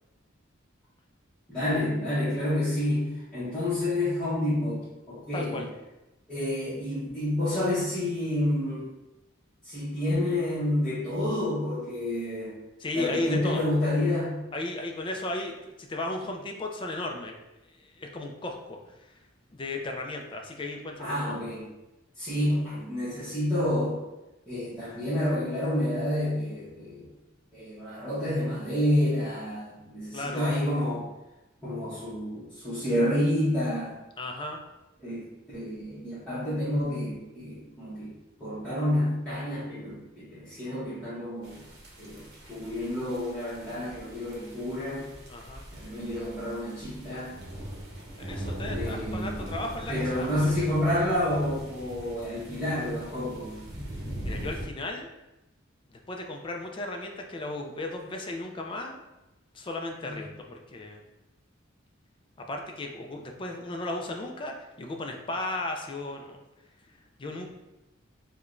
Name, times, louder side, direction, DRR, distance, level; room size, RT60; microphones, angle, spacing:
voice 1, 1.5-5.6 6.3-8.9 9.6-12.5 12.9-14.4 21.0-21.7 22.2-24.0 24.5-27.1 27.5-31.1 31.6-34.0 35.0-35.2 35.5-38.1 38.4-41.6 42.0-45.1 45.7-47.3 48.7-49.3 49.9-53.6 60.1-60.2, left 1 dB, 5° left, -15 dB, 1.0 m, -29 dB
voice 2, 5.3-5.7 12.8-13.6 14.5-17.3 17.7-19.1 19.5-21.3 30.1-30.4 34.2-34.6 45.3-45.6 48.2-50.7 54.2-55.1 55.9-59.0 59.5-61.0 62.4-66.4 67.2-67.5, left 2 dB, 25° left, 2 dB, 0.3 m, -35 dB
sound 1, 41.4-54.7, equal, 55° right, 0.9 m, -40 dB
4.6 x 2.2 x 2.5 m, 0.98 s
head